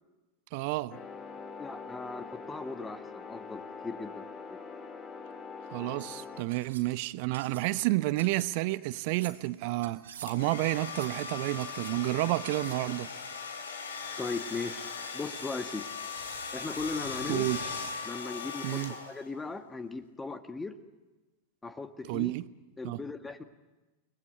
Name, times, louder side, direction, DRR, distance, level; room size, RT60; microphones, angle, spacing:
voice 1, 0.5-1.0 5.7-13.1 17.3-17.6 18.6-18.9 22.0-22.4 22.8-23.0, right 19 dB, 45° right, 1.0 m, -30 dB
sound 1, 0.9-6.4, left 5 dB, 25° left, 2.1 m, -44 dB
voice 2, 1.6-4.2 14.2-14.9 15.1-15.8 16.5-17.5 18.0-20.7 21.6-22.3 22.8-23.4, left 3 dB, 10° left, 1.6 m, -38 dB
sound 2, 6.0-6.1 6.5-6.9 7.3-7.7 8.2-8.5 9.0-9.4 9.8-10.3 10.7-11.2 11.6-12.0 12.5-12.9, right 8 dB, 65° right, 3.1 m, -48 dB
Domestic sounds home sounds, 10.3-19.4, left 5 dB, 65° left, 2.9 m, -39 dB
30.0 x 20.5 x 9.6 m
figure-of-eight pair, 90°, 0 cm